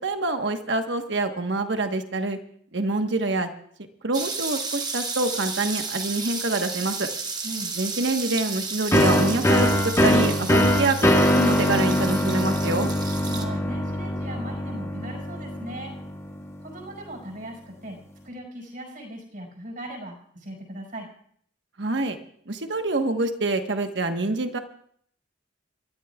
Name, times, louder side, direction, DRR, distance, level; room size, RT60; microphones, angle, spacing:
voice 1, 0.0-2.4 2.7-3.5 4.0-7.1 7.8-12.9 21.8-22.2 22.5-24.6, right 2 dB, 70° right, 6 dB, 1.3 m, -26 dB
sound 1, 4.1-13.4, right 4 dB, 20° right, 1.2 m, -33 dB
sound 2, 8.9-16.4, left 1 dB, 15° left, 0.9 m, -22 dB
voice 2, 13.3-15.9 16.6-18.0 18.2-21.1, right 1 dB, 50° right, 1 dB, 5.1 m, -38 dB
29.0 x 13.5 x 2.4 m, 0.63 s
head